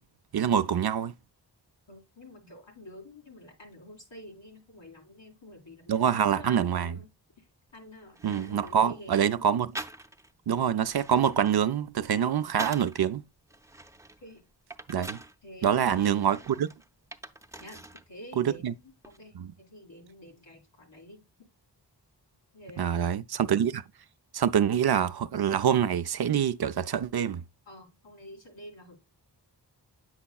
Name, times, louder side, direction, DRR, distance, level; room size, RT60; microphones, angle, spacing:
voice 1, 0.3-1.1 5.9-6.9 8.2-9.8 10.5-13.2 14.9-15.2 15.6-16.7 18.4-18.7 19.4-19.5 22.8-23.8 24.3-27.4, right 8 dB, 65° right, 0.5 m, -25 dB
voice 2, 1.9-6.0 6.3-7.1 7.7-9.2 14.2-14.4 15.4-16.4 17.6-21.2 22.5-23.2 27.7-29.0, left 1 dB, 90° left, 2.4 m, -48 dB
sound 1, 7.7-7.8 8.1-8.9 9.7-10.4 10.7-13.0 13.5-15.4 15.9-18.1 18.4-19.2, right 2 dB, 5° right, 0.5 m, -44 dB
8.0 x 5.6 x 2.3 m
wide cardioid pair, 75°, 43 cm